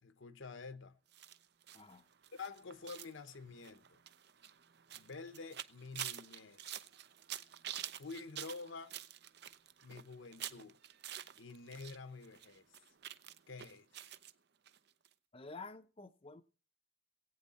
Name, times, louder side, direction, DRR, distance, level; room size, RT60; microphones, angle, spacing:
voice 1, 0.0-1.0 2.3-4.0 4.9-6.6 8.0-8.9 9.8-10.8 11.4-12.6 13.5-13.9, left 4 dB, 75° left, 0.9 m, -48 dB
sound 1, 1.1-12.0 12.2-14.3 14.7-14.8 15.1-15.2, right 11 dB, 55° right, 0.5 m, -48 dB
voice 2, 1.7-2.1 15.3-16.4, left 3 dB, 30° left, 0.6 m, -50 dB
19.5 x 8.6 x 4.2 m
head